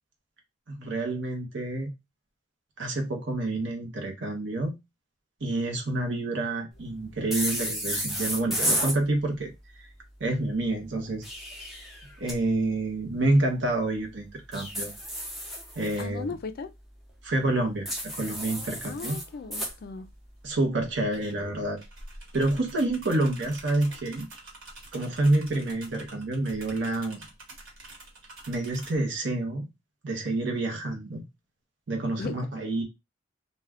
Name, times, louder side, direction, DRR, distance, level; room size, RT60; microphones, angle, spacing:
voice 1, 0.7-1.9 2.8-4.8 5.4-9.5 10.2-11.2 12.2-14.9 15.8-16.3 17.2-17.9 18.2-19.2 20.4-21.8 22.3-24.3 24.9-27.2 28.5-29.7 30.0-31.2 31.9-32.8, right 2 dB, 65° right, 0.7 m, -28 dB
sound 1, 7.3-9.0 11.0-12.4 14.5-16.0 17.9-19.7, equal, ahead, 0.7 m, -32 dB
voice 2, 16.0-16.7 18.8-20.1 32.2-32.3, left 4 dB, 50° left, 0.3 m, -37 dB
sound 2, 20.0-20.1 20.4-29.0, right 2 dB, 90° right, 1.1 m, -46 dB
2.2 x 2.2 x 3.4 m
head